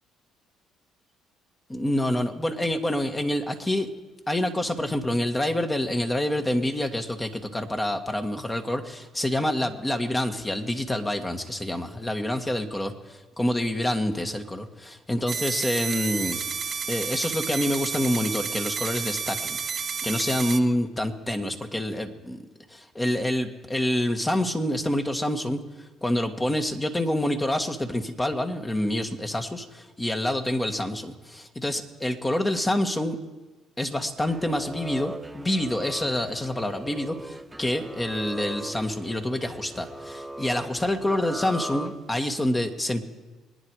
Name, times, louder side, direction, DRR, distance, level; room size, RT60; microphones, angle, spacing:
voice 1, 1.7-3.9 4.3-16.4 16.9-19.6 20.0-22.4 22.7-33.2 33.8-43.1, left 1 dB, 20° left, 6 dB, 1.9 m, -27 dB
sound 1, 15.3-20.6, right 6 dB, 45° right, 1.0 m, -31 dB
sound 2, 34.2-42.4, right 1 dB, 10° right, 0.8 m, -39 dB
24.5 x 10.0 x 4.9 m, 1.2 s
supercardioid pair, 65°, 0 cm